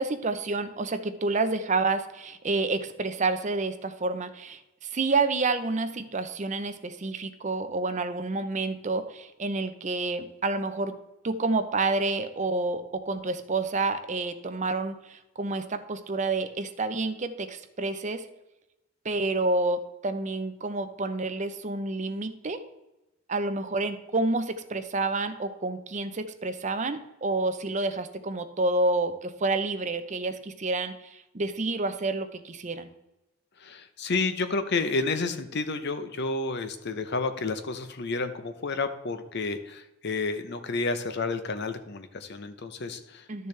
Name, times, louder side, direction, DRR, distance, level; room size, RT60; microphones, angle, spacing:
voice 1, 0.0-10.9 11.2-18.2 19.0-22.6 23.3-32.9 43.3-43.5, right 3 dB, 35° right, 9 dB, 0.7 m, -29 dB
voice 2, 33.6-43.5, left 3 dB, 55° left, 10 dB, 0.8 m, -30 dB
12.0 x 6.8 x 3.3 m, 0.96 s
head